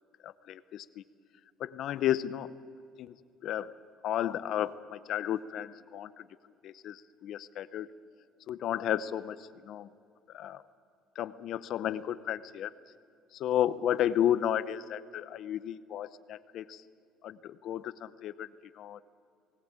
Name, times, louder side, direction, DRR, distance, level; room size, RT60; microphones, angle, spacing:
voice 1, 0.2-1.0 1.6-2.5 3.0-3.2 3.4-3.7 4.0-6.3 6.6-7.9 8.5-9.9 10.3-10.6 11.1-12.7 13.3-16.8 17.2-18.5 18.7-19.0, left 11 dB, 50° left, 15 dB, 0.7 m, -33 dB
19.5 x 19.0 x 8.7 m, 2.3 s
cardioid pair, 150°, 0 cm